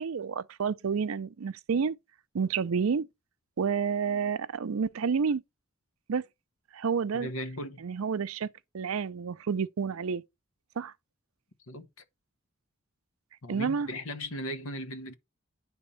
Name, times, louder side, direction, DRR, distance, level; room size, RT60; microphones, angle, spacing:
voice 1, 0.0-2.0 2.3-3.1 3.6-5.4 6.1-6.2 6.7-7.3 7.8-8.5 8.7-10.2 10.8-10.9 13.5-13.9, right 6 dB, 85° right, 0.5 m, -29 dB
voice 2, 7.1-7.8 11.7-11.9 13.4-15.1, left 1 dB, 85° left, 1.2 m, -37 dB
9.7 x 3.5 x 5.5 m
head